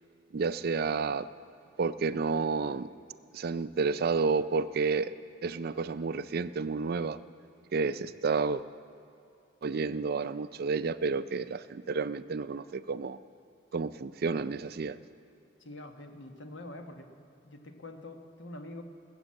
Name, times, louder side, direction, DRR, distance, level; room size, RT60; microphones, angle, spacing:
voice 1, 0.3-1.3 1.8-2.9 3.3-5.1 5.4-7.2 7.7-8.6 9.6-13.2 13.7-15.0, right 4 dB, 55° right, 14 dB, 0.4 m, -30 dB
voice 2, 15.6-17.1 17.4-18.8, left 2 dB, 85° left, 5 dB, 1.4 m, -45 dB
19.5 x 8.1 x 7.6 m, 2.6 s
head